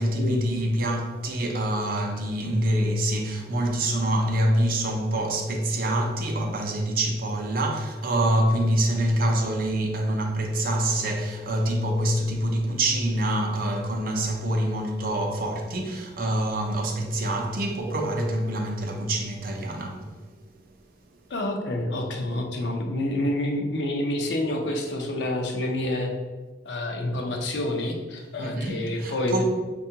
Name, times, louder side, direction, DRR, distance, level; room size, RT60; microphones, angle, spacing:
voice 1, 0.0-20.1 28.4-29.4, right 1 dB, 50° right, 0.5 m, -26 dB
voice 2, 21.3-26.1 26.6-29.4, left 1 dB, 70° left, 0.5 m, -28 dB
4.5 x 2.3 x 2.8 m
head